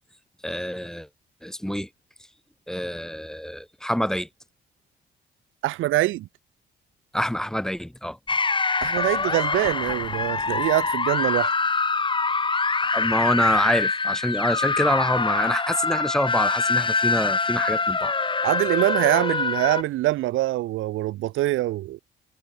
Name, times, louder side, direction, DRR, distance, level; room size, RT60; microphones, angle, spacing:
voice 1, 0.4-1.1 1.4-1.9 2.7-4.3 7.1-8.2 12.9-18.1, equal, 5° left, 2.6 m, -26 dB
voice 2, 5.6-6.3 8.8-11.5 18.4-22.0, right 16 dB, 90° right, 1.5 m, -24 dB
sound 1, 8.3-19.8, left 4 dB, 25° left, 1.7 m, -24 dB
cardioid pair, 90°, 20 cm